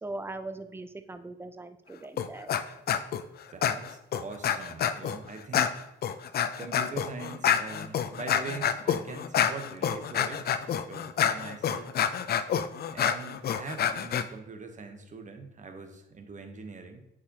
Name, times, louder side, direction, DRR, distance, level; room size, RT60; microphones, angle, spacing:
voice 1, 0.0-2.5, right 2 dB, 10° right, 10 dB, 0.5 m, -40 dB
sound 1, 2.2-2.6 2.9-3.2 3.6-5.2 5.5-14.2, left 9 dB, 55° left, 0.5 m, -28 dB
voice 2, 3.5-5.8 6.6-11.9 12.9-17.0, right 4 dB, 40° right, 6 dB, 1.0 m, -42 dB
8.3 x 4.9 x 2.9 m, 0.86 s
cardioid pair, 90°, 20 cm